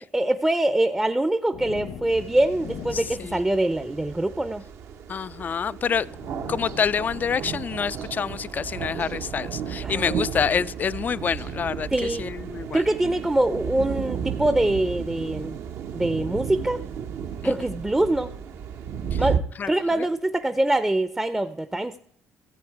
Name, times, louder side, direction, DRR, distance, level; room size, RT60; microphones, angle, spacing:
voice 1, 0.1-4.6 9.8-10.2 11.9-12.2 12.7-15.6 15.9-16.8 17.4-18.3 19.2-22.0, right 1 dB, 10° right, 0.5 m, -24 dB
sound 1, 1.5-4.2 5.5-5.6 5.9-9.5 10.4-10.7 11.8-14.8 16.3-16.4 18.1-18.9 19.7-21.1, left 6 dB, 70° left, 1.0 m, -45 dB
sound 2, 2.1-19.4, right 7 dB, 65° right, 0.9 m, -33 dB
voice 2, 5.1-6.1 6.5-12.8 17.4-17.5 19.1-19.2 19.6-19.7, left 7 dB, 35° left, 0.3 m, -27 dB
14.5 x 7.8 x 4.7 m
supercardioid pair, 80°, 5 cm